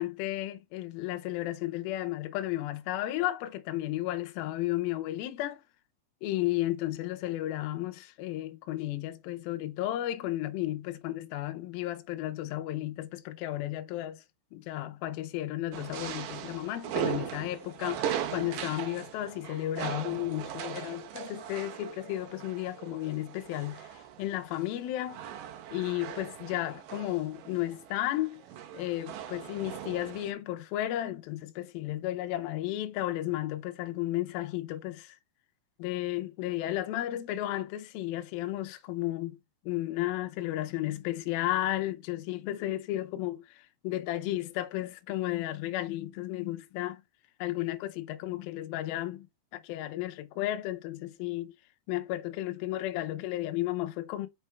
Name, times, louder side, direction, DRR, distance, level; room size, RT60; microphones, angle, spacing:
voice 1, 0.0-5.6 6.2-14.2 14.5-25.2 25.7-28.4 28.7-35.2 35.8-39.4 39.6-47.0 47.4-49.3 49.5-51.5 51.9-54.3, left 15 dB, 80° left, 2.1 m, -33 dB
sound 1, 15.7-30.3, right 10 dB, 85° right, 1.9 m, -39 dB
5.6 x 4.3 x 4.5 m
omnidirectional pair, 5.0 m